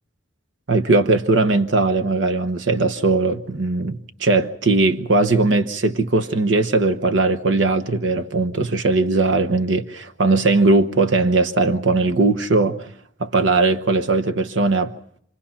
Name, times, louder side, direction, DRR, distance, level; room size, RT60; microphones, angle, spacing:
voice 1, 0.7-12.8 13.2-14.9, right 3 dB, 75° right, 1.0 m, -19 dB
28.0 x 20.0 x 5.8 m
head